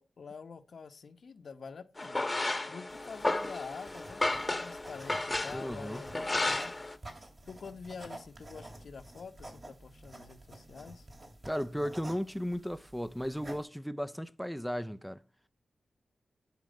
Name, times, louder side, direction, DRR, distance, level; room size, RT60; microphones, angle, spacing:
voice 1, 0.0-2.2 2.7-6.7 7.5-11.1, left 5 dB, 70° left, 0.9 m, -47 dB
sound 1, 2.0-7.0, left 2 dB, 25° left, 1.0 m, -33 dB
sound 2, 2.9-13.6, right 1 dB, 40° right, 2.8 m, -51 dB
voice 2, 5.5-6.0 11.4-15.2, equal, ahead, 0.5 m, -35 dB
11.5 x 4.7 x 5.2 m
wide cardioid pair, 85°, 0 cm